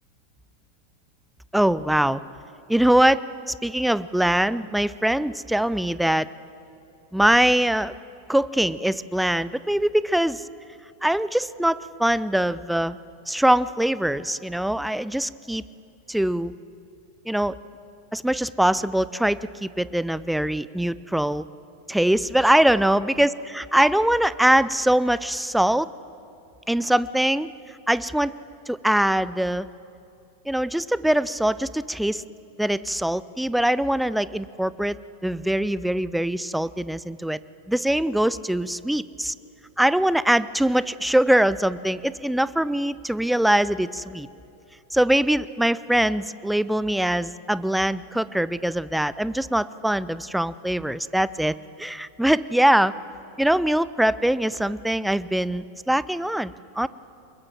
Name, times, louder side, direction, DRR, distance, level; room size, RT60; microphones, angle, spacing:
voice 1, 1.5-2.2 2.7-6.3 7.1-7.9 8.3-10.5 11.0-13.0 13.3-15.6 16.1-16.5 17.3-17.6 18.1-21.4 21.9-23.3 23.6-25.9 26.7-27.5 27.9-28.3 28.7-29.7 30.5-32.2 32.6-37.4 37.7-39.3 39.8-44.3 44.9-52.9 53.4-56.9, right 1 dB, ahead, 18 dB, 0.4 m, -22 dB
23.5 x 21.5 x 7.5 m, 2.7 s
figure-of-eight pair, 90°, 0 cm